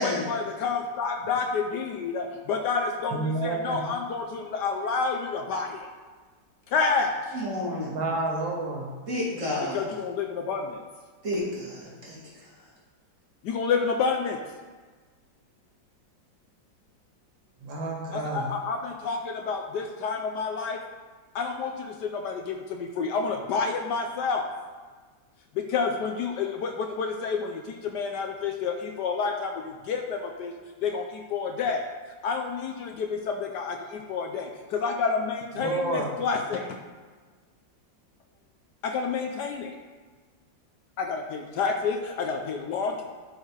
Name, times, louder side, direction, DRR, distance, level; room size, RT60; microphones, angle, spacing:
voice 1, 0.0-5.9 6.7-7.4 9.7-10.8 13.4-14.4 18.1-20.8 21.3-24.5 25.5-30.5 30.8-31.8 32.2-36.7 38.8-39.7 41.0-43.0, left 5 dB, 75° left, 4 dB, 1.2 m, -29 dB
voice 2, 3.1-3.8 7.9-8.9 17.6-18.5 35.6-36.1, right 2 dB, 85° right, 0 dB, 2.2 m, -29 dB
voice 3, 7.3-8.0 9.1-9.9 11.2-12.5, left 1 dB, 40° right, -6 dB, 2.5 m, -31 dB
11.0 x 4.6 x 4.8 m, 1.4 s
omnidirectional pair, 2.0 m